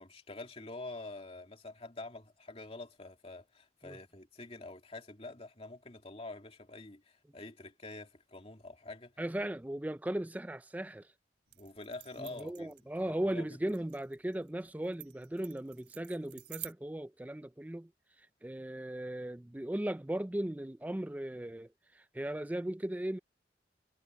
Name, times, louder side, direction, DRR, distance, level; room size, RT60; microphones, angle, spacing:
voice 1, 0.0-9.1 11.5-12.7 13.0-13.5, left 2 dB, 35° left, 2.7 m, -46 dB
voice 2, 9.2-11.1 12.2-17.9 18.4-23.2, right 1 dB, 10° right, 0.4 m, -37 dB
sound 1, 11.5-16.7, right 17 dB, 85° right, 3.7 m, -50 dB
head